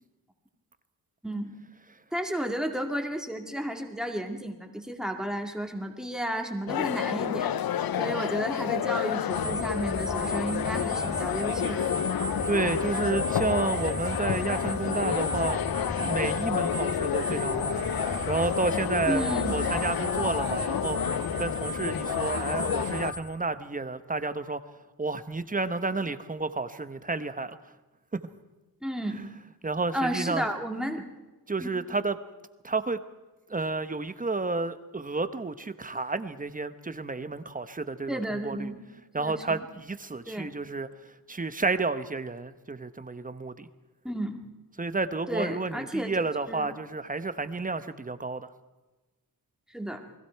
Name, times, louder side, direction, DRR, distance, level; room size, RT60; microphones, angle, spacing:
voice 1, 1.2-1.5 2.1-7.5 8.0-11.9 19.1-19.5 28.8-29.2 29.9-31.0 31.6-31.7 38.1-38.8 39.2-39.6 40.3-40.5 44.0-44.4 45.3-46.1 46.5-46.7 49.7-50.0, right 1 dB, ahead, 3 dB, 2.3 m, -32 dB
sound 1, 6.7-23.1, left 10 dB, 75° left, 0.7 m, -30 dB
sound 2, 9.3-23.2, left 1 dB, 40° left, 3.0 m, -35 dB
voice 2, 12.5-15.6 16.0-17.9 18.3-21.0 21.4-24.6 25.0-27.6 28.1-28.2 29.1-29.3 29.6-30.5 31.5-32.2 32.6-33.0 33.5-38.7 39.1-43.7 44.8-48.5, right 3 dB, 25° right, 11 dB, 1.0 m, -31 dB
29.0 x 20.5 x 4.6 m, 1.2 s
wide cardioid pair, 125°, 36 cm